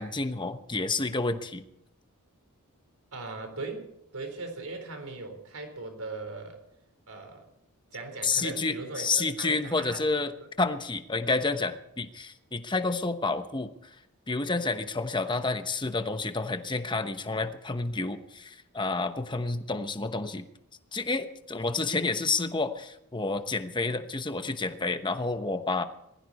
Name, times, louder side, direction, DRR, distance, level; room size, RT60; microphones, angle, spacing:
voice 1, 0.0-1.7 8.2-13.7 14.3-20.5 20.9-25.8, left 3 dB, 20° left, 9 dB, 1.0 m, -30 dB
voice 2, 3.1-6.6 7.1-7.4 7.9-10.3, right 3 dB, 70° right, 6 dB, 4.0 m, -39 dB
20.5 x 15.5 x 4.2 m, 0.80 s
head